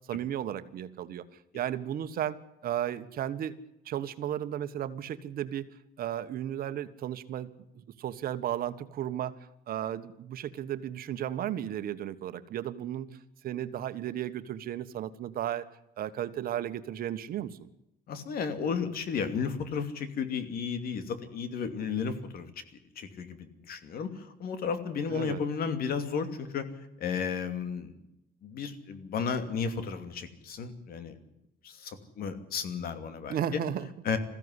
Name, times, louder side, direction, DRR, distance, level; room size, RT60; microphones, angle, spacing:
voice 1, 0.1-1.2 1.5-2.4 2.6-3.6 3.8-5.7 6.0-7.5 7.7-9.4 9.7-13.1 13.4-15.7 16.0-17.7 25.1-25.4 33.3-33.9, right 11 dB, 60° right, 12 dB, 1.4 m, -34 dB
voice 2, 18.1-22.5 23.0-26.7 27.0-27.9 28.4-31.1 31.6-33.6 34.0-34.2, left 6 dB, 60° left, 10 dB, 2.8 m, -33 dB
21.5 x 15.5 x 9.9 m, 0.86 s
cardioid pair, 110°, 17 cm